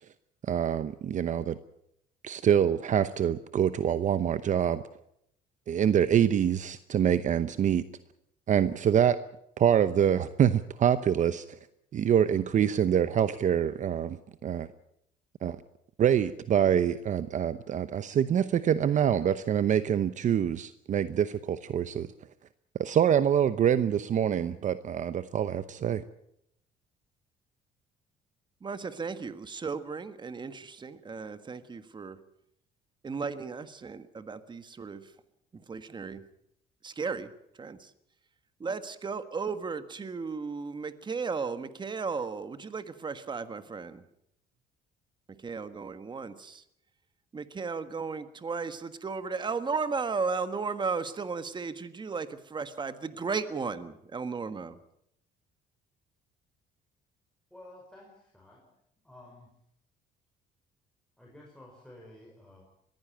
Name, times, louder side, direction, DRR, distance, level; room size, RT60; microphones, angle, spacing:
voice 1, 0.4-1.6 2.2-4.8 5.7-7.8 8.5-9.2 9.6-11.6 11.9-14.2 14.4-14.7 15.4-15.6 16.0-22.1 22.8-26.0, right 9 dB, 45° right, 13 dB, 0.9 m, -25 dB
voice 2, 28.6-32.2 33.0-35.0 35.7-36.2 36.8-37.3 37.6-37.9 38.6-44.0 45.4-46.6 47.3-54.8, right 5 dB, 25° right, 11 dB, 1.6 m, -35 dB
voice 3, 57.5-58.6 59.0-59.5 61.2-62.6, left 1 dB, 5° left, -2 dB, 5.4 m, -52 dB
21.5 x 15.0 x 8.9 m, 0.75 s
cardioid pair, 110°, 17 cm